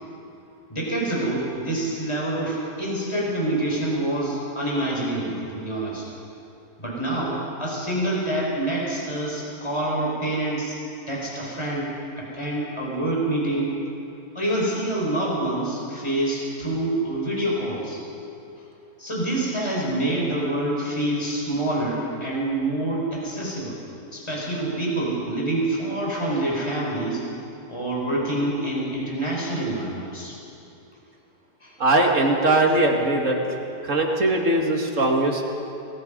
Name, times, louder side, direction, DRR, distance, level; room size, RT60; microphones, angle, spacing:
voice 1, 0.7-6.0 6.8-10.7 11.1-13.7 14.3-18.0 19.0-23.8 24.1-27.2 27.7-30.3 31.6-31.7, right 1 dB, 15° left, -4 dB, 5.7 m, -26 dB
voice 2, 31.8-33.4 33.8-35.4, right 2 dB, 50° right, 1 dB, 2.7 m, -20 dB
28.5 x 20.0 x 5.4 m, 2.9 s
omnidirectional pair, 1.7 m